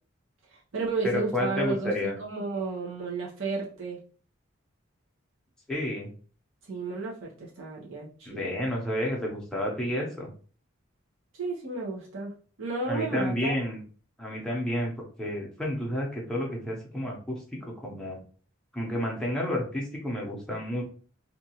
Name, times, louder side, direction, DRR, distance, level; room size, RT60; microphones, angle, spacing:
voice 1, 0.5-4.0 6.6-8.4 11.3-12.3 12.6-13.6, right 3 dB, 75° right, -4 dB, 0.8 m, -33 dB
voice 2, 1.0-2.1 5.7-6.1 8.3-10.3 12.9-13.8 14.2-14.9 15.2-18.2 18.7-20.8, left 1 dB, 5° left, -3 dB, 0.7 m, -30 dB
2.7 x 2.4 x 2.8 m, 0.41 s
head